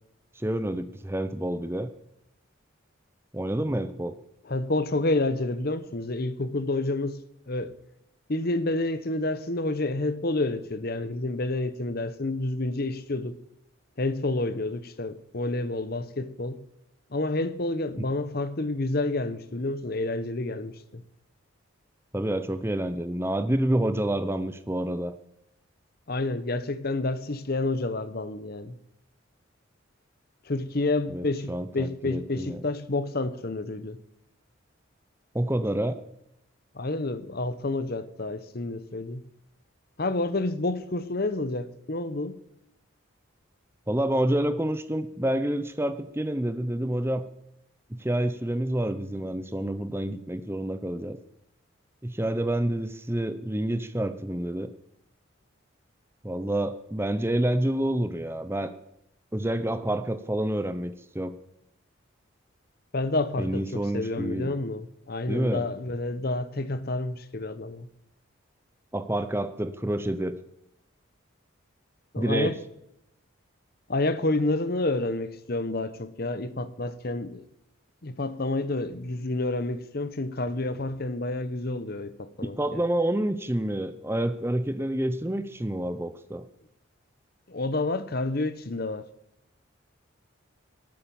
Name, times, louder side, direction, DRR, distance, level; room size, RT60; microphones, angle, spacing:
voice 1, 0.4-1.9 3.3-4.1 18.0-18.1 22.1-25.1 31.1-32.6 35.3-36.0 43.9-47.3 47.9-51.2 52.0-54.7 56.2-58.7 59.3-61.4 63.4-64.5 65.3-65.6 68.9-70.4 72.2-72.5 82.4-86.5, right 1 dB, 10° right, 0.6 m, -28 dB
voice 2, 4.5-7.7 8.3-13.4 14.0-16.7 17.1-21.0 26.1-28.8 30.5-34.0 36.7-39.2 40.0-42.4 62.9-67.9 72.1-72.5 73.9-77.4 78.0-82.8 87.5-89.1, left 2 dB, 45° left, 0.9 m, -29 dB
18.0 x 8.7 x 7.0 m
head